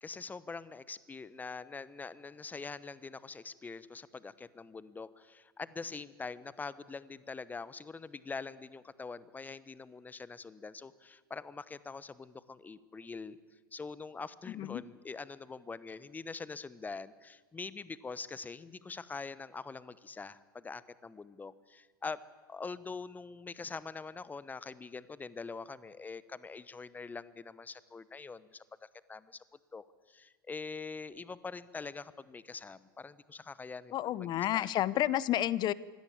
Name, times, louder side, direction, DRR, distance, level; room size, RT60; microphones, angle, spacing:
voice 1, 0.0-13.4 13.7-22.2 22.5-29.4 29.7-34.7, left 4 dB, 15° left, 17 dB, 1.0 m, -44 dB
voice 2, 33.9-35.7, left 13 dB, 40° left, 20 dB, 0.7 m, -30 dB
23.5 x 17.0 x 8.6 m, 1.4 s
hypercardioid pair, 85°, 12 cm